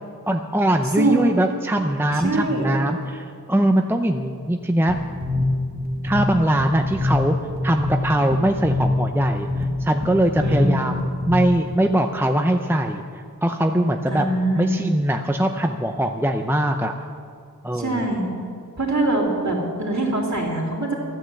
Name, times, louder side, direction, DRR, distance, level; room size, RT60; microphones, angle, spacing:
voice 1, 0.3-5.0 6.0-7.3 7.6-9.5 9.8-13.0 13.4-14.2 14.5-16.9 17.6-18.1, right 1 dB, 5° right, 4 dB, 0.7 m, -21 dB
voice 2, 2.1-2.7 10.4-10.8 14.1-14.7 17.7-18.3 18.8-20.9, right 2 dB, 50° right, -2 dB, 3.4 m, -23 dB
sound 1, 4.9-11.7, left 2 dB, 25° right, 1.8 m, -25 dB
14.0 x 10.0 x 7.7 m, 2.2 s
wide cardioid pair, 55°, 37 cm